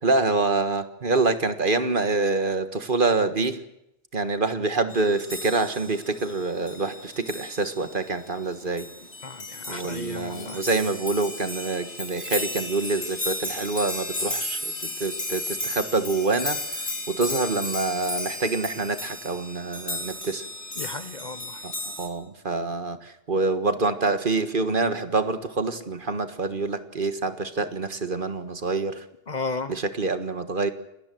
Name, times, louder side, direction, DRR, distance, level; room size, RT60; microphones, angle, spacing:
voice 1, 0.0-3.6 4.1-8.9 9.7-20.4 21.6-29.0 29.7-30.7, right 3 dB, 50° right, 10 dB, 1.7 m, -26 dB
sound 1, 4.9-22.1, left 2 dB, 80° left, 4.2 m, -34 dB
voice 2, 9.2-10.6 20.8-21.7 29.3-29.8, left 3 dB, 40° left, 13 dB, 1.1 m, -34 dB
28.0 x 19.0 x 7.8 m, 0.85 s
omnidirectional pair, 1.1 m